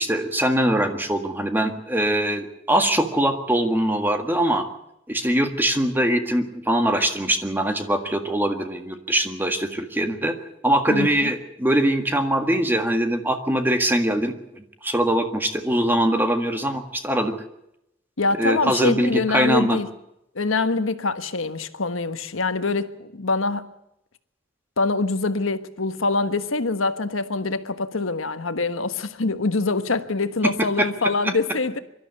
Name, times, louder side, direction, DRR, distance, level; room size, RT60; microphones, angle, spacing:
voice 1, 0.0-4.6 5.1-10.3 10.6-17.3 18.4-19.8 30.8-30.9, right 1 dB, 10° right, 1.7 m, -22 dB
voice 2, 10.9-11.3 18.2-19.9 20.3-23.7 24.8-31.8, left 3 dB, 90° left, 1.3 m, -24 dB
23.5 x 12.5 x 9.7 m
head